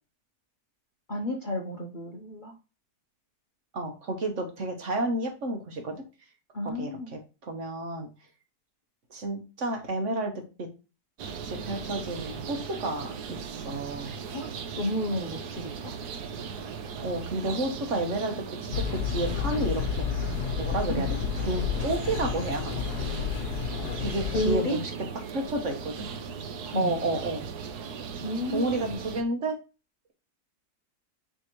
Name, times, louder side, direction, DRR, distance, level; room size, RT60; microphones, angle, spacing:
voice 1, 1.1-2.5 6.5-7.1 14.3-14.5 14.8-16.0 21.0-21.1 24.3-24.8 26.7-26.9 28.2-29.0, left 1 dB, 40° left, 0 dB, 0.8 m, -31 dB
voice 2, 3.7-6.0 6.6-8.1 9.1-10.7 11.4-14.1 17.0-20.1 20.6-21.1 21.3-22.8 23.1-23.2 24.0-24.9 25.3-26.1 26.7-27.4 28.5-29.5, right 2 dB, 55° right, 4 dB, 1.3 m, -31 dB
sound 1, 11.2-29.2, right 6 dB, 80° right, 1.3 m, -38 dB
sound 2, 18.7-24.6, left 7 dB, 80° left, 1.3 m, -31 dB
9.2 x 3.4 x 3.0 m, 0.31 s
omnidirectional pair, 1.7 m